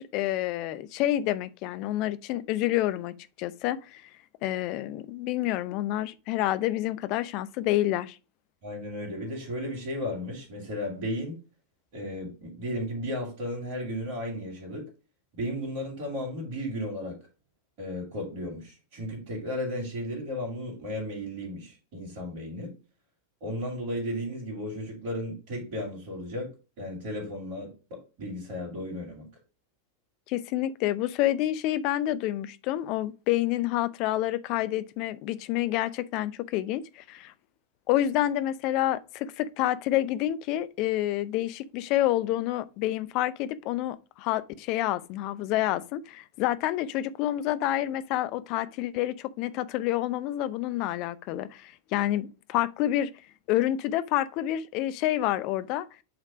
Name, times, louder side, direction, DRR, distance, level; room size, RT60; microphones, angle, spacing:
voice 1, 0.0-4.0 4.4-8.2 30.3-37.3 37.9-53.1 53.5-55.9, left 14 dB, 40° left, 0.5 m, -28 dB
voice 2, 8.6-11.4 11.9-14.9 15.3-17.2 17.8-22.7 23.4-29.3, equal, 45° right, 2.7 m, -34 dB
8.0 x 3.3 x 4.9 m
figure-of-eight pair, 90°, 0 cm